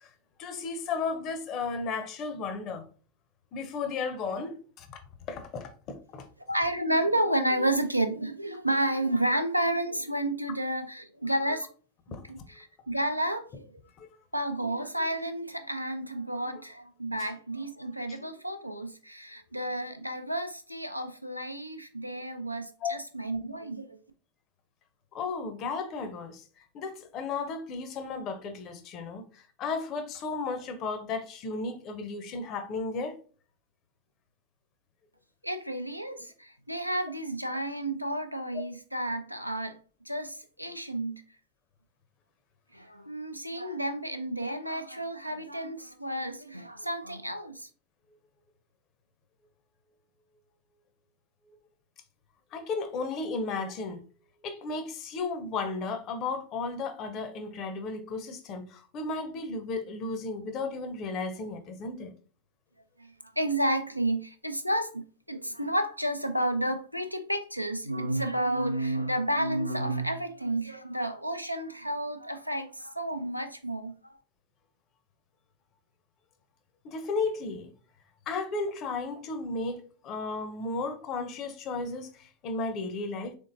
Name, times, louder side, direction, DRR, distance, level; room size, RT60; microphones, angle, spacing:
voice 1, 0.4-2.9 3.5-5.0 5.3-6.3 12.1-12.2 14.0-14.1 22.8-22.9 25.1-26.4 26.7-33.2 38.5-38.6 52.5-54.0 54.4-62.1 76.8-77.7 78.3-83.3, left 4 dB, 35° left, 0.6 m, -34 dB
voice 2, 6.5-11.7 12.3-13.8 14.3-24.0 35.4-39.8 40.1-41.2 42.7-47.7 63.0-74.1, right 1 dB, 90° right, 0.4 m, -31 dB
3.6 x 3.5 x 2.6 m
figure-of-eight pair, 90°, 0 cm